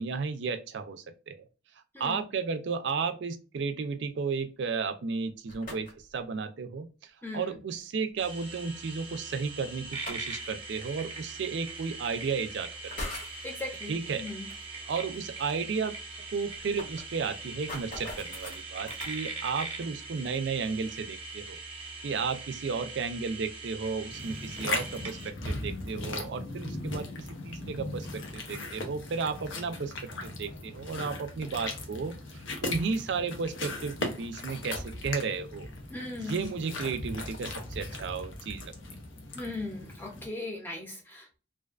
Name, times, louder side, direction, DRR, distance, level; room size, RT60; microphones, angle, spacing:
voice 1, 0.0-1.4 2.0-12.7 13.0-13.1 13.9-14.2 14.9-15.9 16.3-21.6 22.0-27.1 27.4-35.7 36.2-38.7, right 5 dB, 65° right, 9 dB, 0.4 m, -33 dB
voice 2, 1.9-2.3 7.2-7.6 13.4-14.5 35.9-36.6 39.3-41.4, left 2 dB, 10° left, 1 dB, 0.6 m, -38 dB
sound 1, 5.3-6.1 7.7-7.8 9.8-10.4 11.6-11.7 12.7-13.4 14.5-14.6 15.0-15.1 15.4-15.5 15.7-15.8 16.3-19.2, left 2 dB, 45° left, 0.8 m, -41 dB
sound 2, 8.2-25.3, right 3 dB, 30° right, 0.7 m, -41 dB
sound 3, 24.1-40.3, left 2 dB, 80° left, 0.6 m, -38 dB
2.5 x 2.3 x 2.3 m, 0.32 s
head